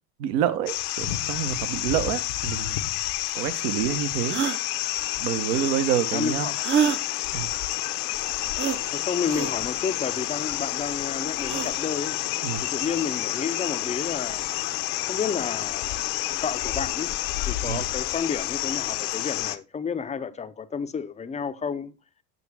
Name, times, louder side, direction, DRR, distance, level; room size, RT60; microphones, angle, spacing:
voice 1, 0.2-2.8 3.3-4.3 5.2-6.5 7.3-7.5 12.4-12.6 17.7-17.8, right 10 dB, 75° right, 1.1 m, -27 dB
sound 1, 0.7-19.6, left 15 dB, 70° left, 0.8 m, -29 dB
sound 2, 3.3-3.4 4.3-4.6 6.6-7.0 8.6-8.8 9.2-9.5 11.4-11.7, right 8 dB, 25° right, 0.6 m, -25 dB
voice 2, 6.1-6.6 8.9-12.2 12.6-14.4 15.1-16.1 16.4-17.1 17.5-22.0, left 6 dB, 15° left, 0.5 m, -31 dB
6.8 x 6.1 x 3.4 m
hypercardioid pair, 80°, 48 cm